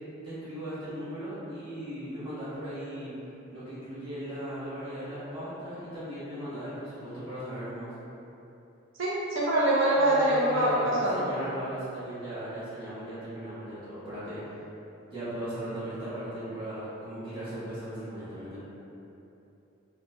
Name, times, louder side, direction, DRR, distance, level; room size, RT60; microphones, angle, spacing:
voice 1, 0.2-3.1 3.5-7.9 10.0-14.6 15.1-18.6, equal, 25° right, -13 dB, 1.4 m, -37 dB
voice 2, 9.0-11.3, right 1 dB, 85° right, -6 dB, 0.5 m, -24 dB
4.0 x 2.2 x 2.8 m, 2.9 s
head